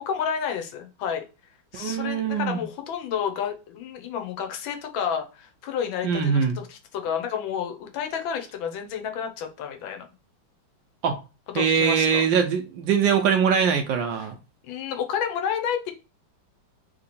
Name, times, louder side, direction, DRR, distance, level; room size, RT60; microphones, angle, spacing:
voice 1, 0.1-1.2 1.7-10.1 11.5-12.2 14.7-15.9, left 8 dB, 85° left, 5 dB, 1.5 m, -30 dB
voice 2, 1.7-2.6 6.0-6.6 11.0-11.2 11.5-14.3, right 7 dB, 75° right, 4 dB, 1.3 m, -22 dB
3.6 x 3.0 x 4.1 m, 0.31 s
omnidirectional pair, 2.1 m